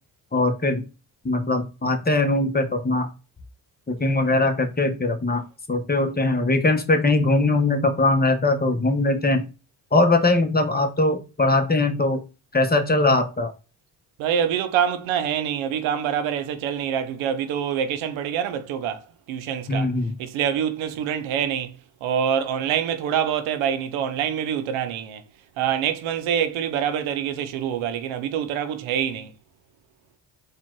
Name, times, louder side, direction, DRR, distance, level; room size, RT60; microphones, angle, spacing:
voice 1, 0.3-0.8 1.2-3.1 3.9-5.4 5.7-9.4 9.9-12.2 12.5-13.5 19.7-20.1, left 2 dB, 20° left, 1.1 m, -21 dB
voice 2, 14.2-19.9 20.2-25.2 25.6-29.3, right 8 dB, 90° right, 0.7 m, -25 dB
4.5 x 2.5 x 4.5 m
supercardioid pair, 65°, 46 cm